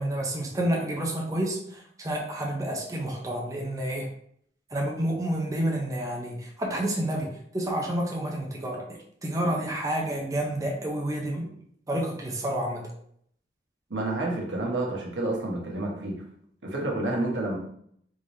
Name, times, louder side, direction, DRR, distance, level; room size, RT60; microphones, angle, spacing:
voice 1, 0.0-4.1 4.7-8.8 9.2-11.5 11.9-12.8, right 1 dB, 20° right, -1 dB, 0.6 m, -29 dB
voice 2, 13.9-16.2 16.6-17.6, right 2 dB, 85° right, -1 dB, 1.0 m, -29 dB
3.7 x 3.2 x 2.7 m, 0.67 s
head